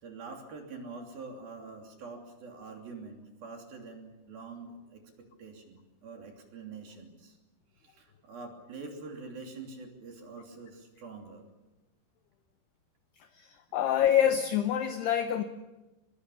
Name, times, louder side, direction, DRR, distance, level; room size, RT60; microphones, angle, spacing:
voice 1, 0.0-7.4 7.8-11.4, right 4 dB, 50° right, 2 dB, 4.4 m, -45 dB
voice 2, 13.3-15.4, left 9 dB, 80° left, 8 dB, 2.4 m, -26 dB
24.5 x 22.5 x 7.0 m, 1.1 s
omnidirectional pair, 6.0 m